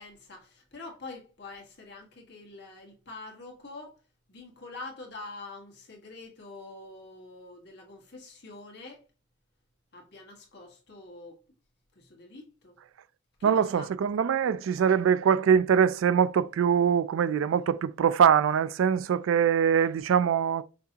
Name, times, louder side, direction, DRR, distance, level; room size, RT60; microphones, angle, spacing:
voice 1, 0.0-4.0 4.3-9.0 9.9-11.4 11.9-12.7 13.4-13.9, left 3 dB, 55° left, 1.5 m, -45 dB
voice 2, 13.4-20.6, right 7 dB, 85° right, 0.3 m, -23 dB
5.8 x 2.8 x 2.8 m
head